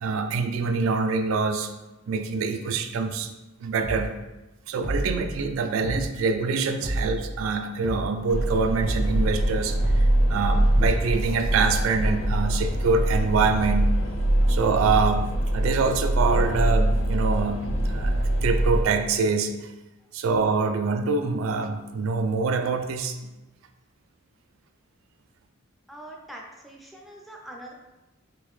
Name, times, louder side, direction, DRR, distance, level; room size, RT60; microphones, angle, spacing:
voice 1, 0.0-1.7 2.1-3.3 3.6-4.1 4.7-13.9 14.5-19.7 20.1-23.3, right 4 dB, 80° right, 7 dB, 0.3 m, -25 dB
sound 1, 3.8-4.1 4.8-5.2 5.8-6.1 6.8-7.2 7.8-8.1 8.8-9.2 9.8-10.1 10.8-11.2, right 1 dB, 35° left, 0.8 m, -29 dB
sound 2, 8.3-18.8, right 1 dB, 75° left, 0.5 m, -23 dB
voice 2, 25.9-27.7, right 1 dB, ahead, -1 dB, 0.4 m, -43 dB
3.7 x 2.8 x 3.1 m, 1.0 s
head